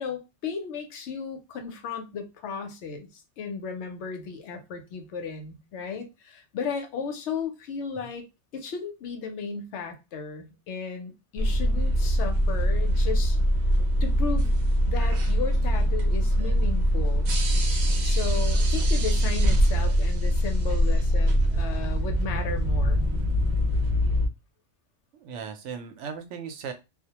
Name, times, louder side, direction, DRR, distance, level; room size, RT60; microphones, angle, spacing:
voice 1, 0.0-8.2 8.5-13.4 14.0-14.5 14.8-17.4 18.0-23.0, left 6 dB, 75° left, 0.9 m, -35 dB
sound 1, 11.4-24.3, equal, 55° right, 0.5 m, -23 dB
voice 2, 25.2-26.7, right 6 dB, 85° right, 0.9 m, -37 dB
2.3 x 2.1 x 2.8 m
omnidirectional pair, 1.2 m